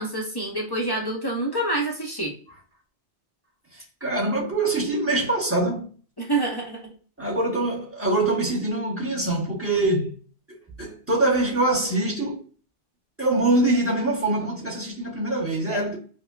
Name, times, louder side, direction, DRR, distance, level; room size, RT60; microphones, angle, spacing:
voice 1, 0.0-2.3 6.2-6.9 15.7-15.8, right 2 dB, 25° left, 0.6 m, -27 dB
voice 2, 3.7-5.9 7.2-10.1 10.8-12.4 13.2-16.0, right 2 dB, 15° right, 0.9 m, -24 dB
5.1 x 2.1 x 2.3 m
omnidirectional pair, 1.2 m